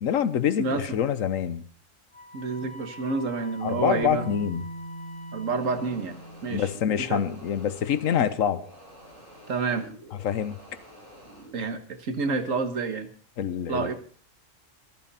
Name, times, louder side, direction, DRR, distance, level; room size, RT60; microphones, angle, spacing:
voice 1, 0.0-1.6 3.6-4.6 6.5-8.6 10.2-10.6 13.4-13.9, left 9 dB, 80° left, 14 dB, 1.3 m, -26 dB
voice 2, 0.6-1.0 2.3-4.3 5.3-6.7 7.1-7.2 9.5-9.9 11.5-13.1 13.7-13.9, right 4 dB, 80° right, 8 dB, 1.8 m, -29 dB
Wind instrument woodwind instrument, 2.1-6.3, left 3 dB, 65° left, 2.8 m, -46 dB
Bass guitar, 4.0-8.0 9.1-9.2, right 1 dB, 5° left, 3.5 m, -41 dB
sound 1, 5.4-11.5, equal, 40° right, 7.2 m, -49 dB
24.0 x 8.6 x 4.2 m, 0.43 s
omnidirectional pair, 1.3 m